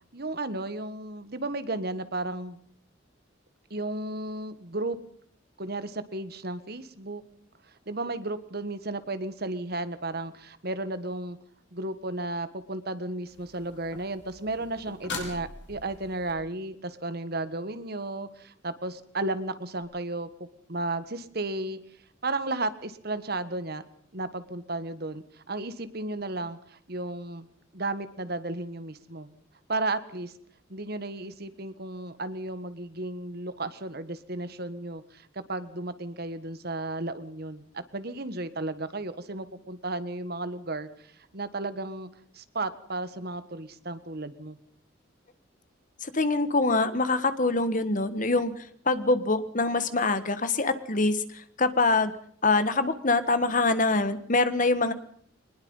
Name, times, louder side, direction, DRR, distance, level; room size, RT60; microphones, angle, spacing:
voice 1, 0.1-2.6 3.7-5.0 5.6-7.2 7.9-11.4 11.7-21.8 22.2-23.8 24.1-27.5 27.7-29.3 29.7-30.3 30.7-42.1 42.3-44.6, right 2 dB, 55° right, 12 dB, 1.5 m, -34 dB
sound 1, 13.3-16.3 19.8-19.9, left 3 dB, 60° left, 5.9 m, -41 dB
voice 2, 46.0-48.5 48.8-52.1 52.4-54.9, left 3 dB, 40° left, 12 dB, 1.5 m, -24 dB
23.0 x 20.5 x 5.6 m, 0.62 s
head